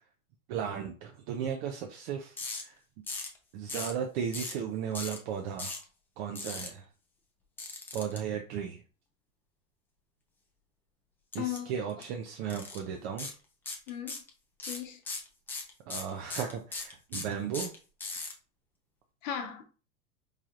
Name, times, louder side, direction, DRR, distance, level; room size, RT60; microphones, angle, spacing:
voice 1, 0.5-2.8 3.5-5.8 6.2-6.9 7.9-8.8 11.3-13.3 15.9-17.7, right 8 dB, 50° right, 0.7 m, -35 dB
sound 1, 2.4-2.6 3.1-3.4 3.7-4.0 4.3-4.6 4.9-5.2 5.6-5.8 6.4-6.7 7.6-8.2 11.3-11.6 11.9-12.0 12.5-12.8 13.2-13.3 13.7-14.3 14.6-18.3, left 3 dB, 5° left, 0.3 m, -38 dB
voice 2, 11.4-11.7 13.9-14.2 14.7-15.0 19.2-19.6, left 10 dB, 65° left, 0.9 m, -36 dB
4.9 x 2.7 x 2.4 m
hypercardioid pair, 125°, 41 cm